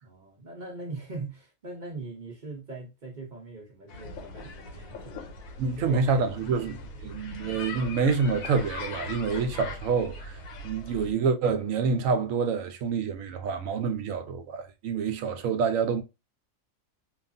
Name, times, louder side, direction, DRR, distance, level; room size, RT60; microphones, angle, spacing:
voice 1, 0.0-7.6 10.5-10.8, right 3 dB, 45° right, 0.7 m, -42 dB
sound 1, 3.9-11.1, left 3 dB, 85° left, 1.1 m, -40 dB
voice 2, 5.6-6.8 7.0-16.0, right 5 dB, 75° right, 1.0 m, -27 dB
3.1 x 2.4 x 2.5 m
omnidirectional pair, 1.4 m